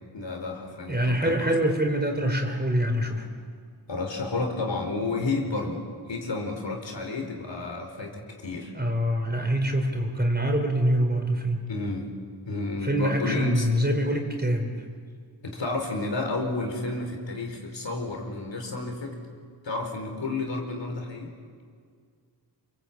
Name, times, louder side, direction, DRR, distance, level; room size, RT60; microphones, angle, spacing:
voice 1, 0.1-1.5 3.9-5.8 6.1-8.7 11.7-12.1 12.5-13.7 15.4-19.2 19.6-21.3, left 2 dB, 75° left, 3 dB, 4.5 m, -31 dB
voice 2, 0.9-3.2 8.7-11.6 12.8-14.7, equal, 20° right, 3 dB, 4.2 m, -25 dB
28.5 x 23.5 x 8.7 m, 2.1 s
wide cardioid pair, 90°, 44 cm